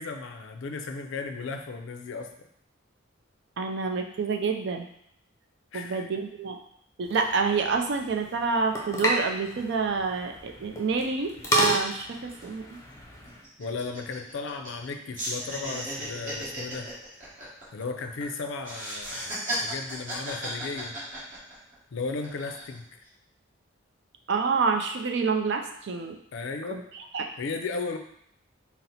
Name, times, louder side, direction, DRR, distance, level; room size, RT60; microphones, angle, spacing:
voice 1, 0.0-2.3 5.7-6.1 13.6-16.9 17.7-21.0 21.9-22.9 26.3-26.8 27.4-28.0, left 4 dB, 65° left, 6 dB, 0.4 m, -35 dB
voice 2, 3.6-4.9 5.7-6.6 7.0-12.8 24.3-26.2 26.7-27.3, right 5 dB, 60° right, 4 dB, 0.4 m, -28 dB
sound 1, 7.0-13.4, equal, 15° left, 0.6 m, -32 dB
sound 2, 12.4-12.5 12.7-12.9 13.3-14.9 15.1-18.2 18.6-21.7 22.2-22.8, right 1 dB, 40° right, 1.2 m, -35 dB
4.2 x 2.0 x 4.0 m, 0.73 s
head